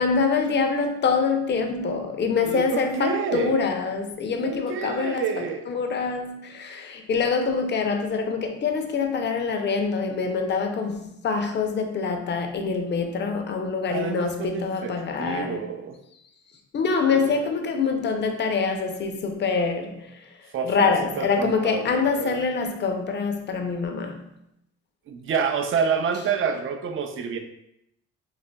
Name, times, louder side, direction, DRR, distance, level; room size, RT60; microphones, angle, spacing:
voice 1, 0.0-15.6 16.7-20.3 20.6-24.3, left 5 dB, 35° left, 0.5 m, -25 dB
voice 2, 2.4-3.6 4.3-5.7 13.9-16.0 17.1-17.3 20.5-22.4 25.1-27.4, right 6 dB, 45° right, 0.5 m, -28 dB
4.0 x 2.7 x 2.2 m
cardioid pair, 90°, 30 cm